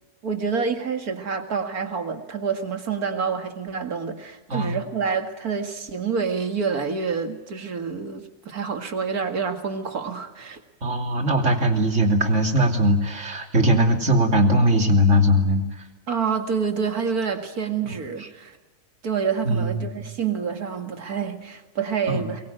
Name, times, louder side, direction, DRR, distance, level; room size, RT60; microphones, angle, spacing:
voice 1, 0.2-10.6 16.1-18.5 19.0-22.4, right 6 dB, 80° right, 6 dB, 2.5 m, -27 dB
voice 2, 10.8-15.6 17.8-18.3 19.4-20.0 22.1-22.2, equal, 50° right, 3 dB, 3.3 m, -20 dB
23.5 x 22.5 x 9.2 m, 1.2 s
omnidirectional pair, 1.6 m